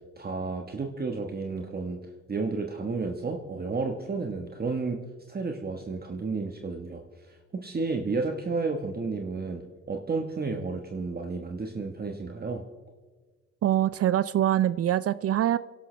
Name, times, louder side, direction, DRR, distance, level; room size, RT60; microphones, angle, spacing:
voice 1, 0.2-2.0 2.3-5.0 5.3-12.6, right 4 dB, 30° right, 3 dB, 1.3 m, -32 dB
voice 2, 13.6-15.6, right 11 dB, 50° right, 17 dB, 0.4 m, -24 dB
28.0 x 12.0 x 3.3 m, 1.4 s
cardioid pair, 90°, 30 cm